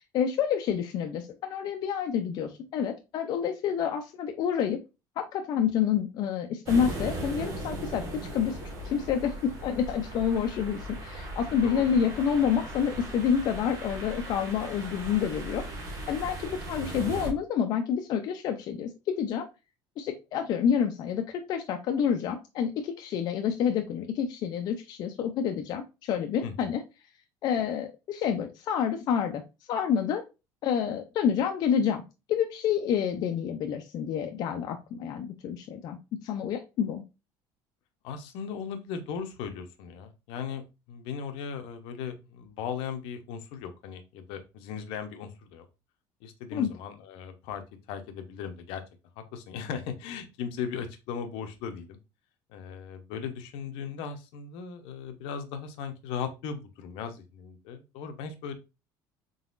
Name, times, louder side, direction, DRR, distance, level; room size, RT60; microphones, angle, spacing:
voice 1, 0.0-4.8 5.2-8.0 8.3-15.6 16.1-19.5 20.0-26.8 27.4-29.4 29.7-30.2 30.6-32.0 32.3-37.0 46.5-46.7, left 8 dB, 50° left, 5 dB, 0.5 m, -28 dB
sound 1, 6.7-17.3, right 1 dB, 40° right, 1.4 m, -38 dB
voice 2, 26.4-26.7 38.0-45.6 46.2-47.6 47.9-48.8 49.2-52.0 52.5-58.5, left 7 dB, 75° left, 7 dB, 0.8 m, -37 dB
3.9 x 3.9 x 2.4 m, 0.27 s
cardioid pair, 150°, 9 cm